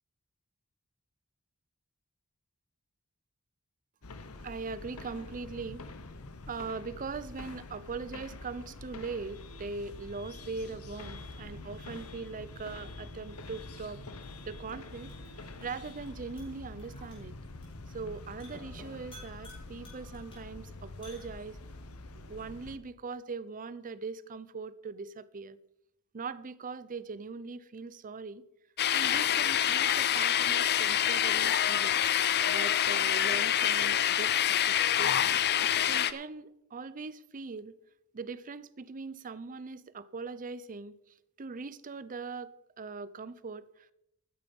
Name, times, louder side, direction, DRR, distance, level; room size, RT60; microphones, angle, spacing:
sound 1, 4.0-22.8, left 2 dB, 75° left, 1.1 m, -46 dB
voice 1, 4.4-5.8 6.5-14.0 14.5-15.2 15.6-17.3 17.9-21.6 22.3-25.6 26.1-28.4 28.9-32.0 32.5-35.4 35.8-37.8 38.1-41.0 41.4-43.9, right 4 dB, 40° right, 0.6 m, -41 dB
sound 2, 13.8-21.8, left 1 dB, 25° left, 5.3 m, -57 dB
sound 3, 28.8-36.1, left 10 dB, 50° left, 0.6 m, -26 dB
12.5 x 9.6 x 5.4 m
head